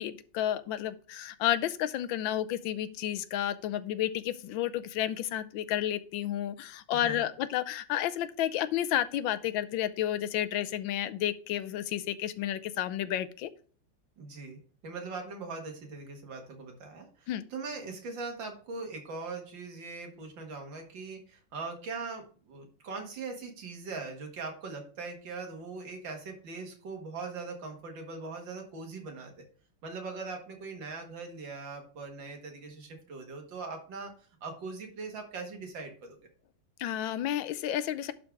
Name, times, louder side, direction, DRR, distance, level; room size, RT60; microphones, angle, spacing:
voice 1, 0.0-13.5 17.3-17.4 36.8-38.1, left 12 dB, 85° left, 13 dB, 1.4 m, -31 dB
voice 2, 6.9-7.2 14.2-29.4 29.8-34.1 34.4-36.2, right 4 dB, 75° right, 3 dB, 2.4 m, -41 dB
11.5 x 3.9 x 4.7 m, 0.42 s
omnidirectional pair, 2.1 m